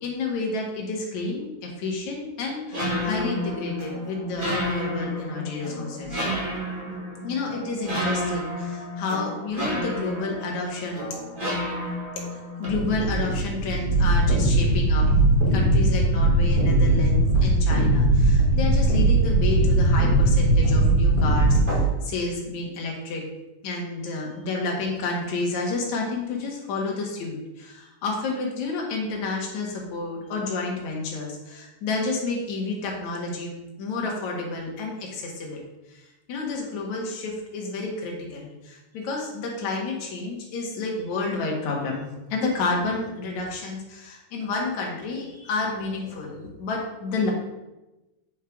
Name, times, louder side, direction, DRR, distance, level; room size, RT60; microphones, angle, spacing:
voice 1, 0.0-6.2 7.2-11.1 12.3-15.1 15.5-23.2 23.6-35.6 35.9-36.0 36.3-47.3, left 3 dB, 60° left, -1 dB, 2.8 m, -30 dB
sound 1, 2.7-21.8, right 1 dB, 15° right, 1.9 m, -22 dB
8.6 x 5.4 x 5.0 m, 1.0 s
omnidirectional pair, 4.0 m